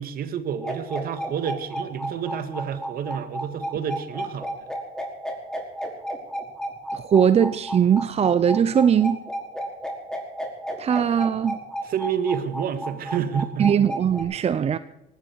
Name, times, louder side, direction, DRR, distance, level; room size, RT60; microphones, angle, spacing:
voice 1, 0.0-4.7 11.8-13.7, right 8 dB, 60° right, 2.0 m, -29 dB
sound 1, 0.6-14.2, right 1 dB, 5° left, 4.9 m, -32 dB
voice 2, 6.9-9.2 10.8-11.6 13.6-14.8, right 8 dB, 40° right, 0.7 m, -20 dB
19.0 x 15.5 x 4.7 m
cardioid pair, 110°, 17 cm